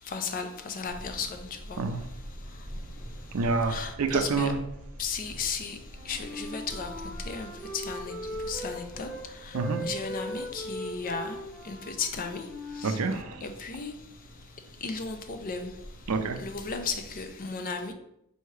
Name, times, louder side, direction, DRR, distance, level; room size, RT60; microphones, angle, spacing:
voice 1, 0.0-2.0 2.5-2.7 3.7-4.5 5.0-11.4 11.6-13.0 13.4-13.9 14.8-15.8 16.4-17.9, left 5 dB, 40° left, 0.4 m, -35 dB
sound 1, 0.9-17.3, equal, 65° left, 1.1 m, -46 dB
voice 2, 3.3-4.6 9.5-9.8 12.8-13.4 16.1-16.4, right 4 dB, 75° right, 0.5 m, -27 dB
Wind instrument woodwind instrument, 5.8-9.2 9.5-13.4, equal, 10° left, 0.9 m, -39 dB
4.6 x 2.8 x 3.1 m
head